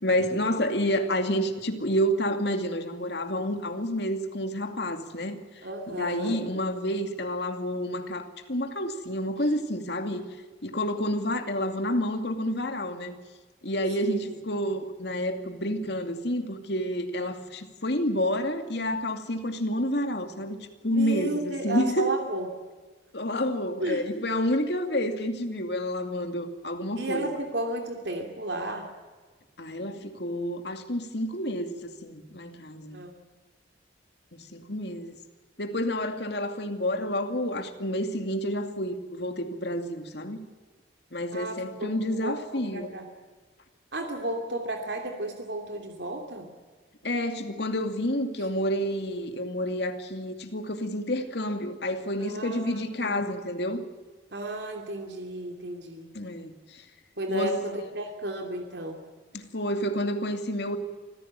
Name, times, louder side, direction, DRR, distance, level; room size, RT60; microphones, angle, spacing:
voice 1, 0.0-5.4 5.9-10.3 10.6-13.1 13.6-22.1 23.1-27.3 29.6-33.0 34.5-35.1 35.6-40.4 41.1-42.9 47.0-53.8 56.1-56.8 57.3-57.6 59.3-60.8, equal, 60° left, 6 dB, 2.4 m, -29 dB
voice 2, 5.6-6.4 9.4-9.5 14.0-14.2 20.9-22.5 23.8-24.1 27.0-28.9 32.9-33.2 41.3-41.9 42.2-43.1 43.9-46.5 48.4-48.5 52.2-53.3 54.3-56.1 57.2-59.0, right 1 dB, 65° right, 3 dB, 2.9 m, -33 dB
25.5 x 15.5 x 8.9 m, 1.4 s
head